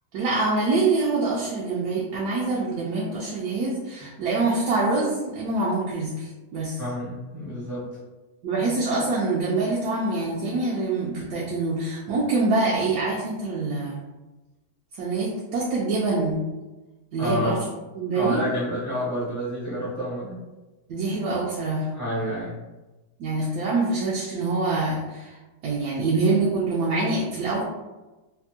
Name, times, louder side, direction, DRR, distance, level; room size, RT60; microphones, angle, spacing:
voice 1, 0.1-6.8 8.4-14.0 15.0-16.5 17.1-17.6 17.9-18.4 20.9-21.9 23.2-25.3 25.6-27.6, right 3 dB, 75° right, -6 dB, 1.1 m, -25 dB
voice 2, 6.8-7.9 17.2-17.6 18.1-20.4 21.9-22.6, equal, 40° right, -10 dB, 0.4 m, -29 dB
3.4 x 2.1 x 2.6 m, 1.1 s
omnidirectional pair, 1.8 m